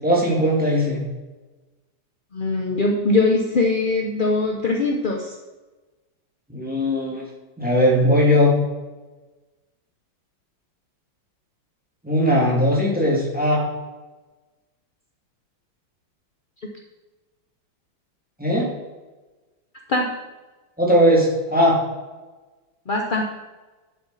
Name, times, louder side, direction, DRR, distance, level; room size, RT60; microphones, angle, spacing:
voice 1, 0.0-1.0 6.5-7.2 7.6-8.5 12.0-13.6 18.4-18.7 20.8-21.7, equal, 5° right, -4 dB, 2.4 m, -18 dB
voice 2, 2.3-5.3 19.9-20.1 22.9-23.2, left 3 dB, 45° left, 1 dB, 0.7 m, -21 dB
11.5 x 7.7 x 4.2 m, 1.2 s
omnidirectional pair, 2.1 m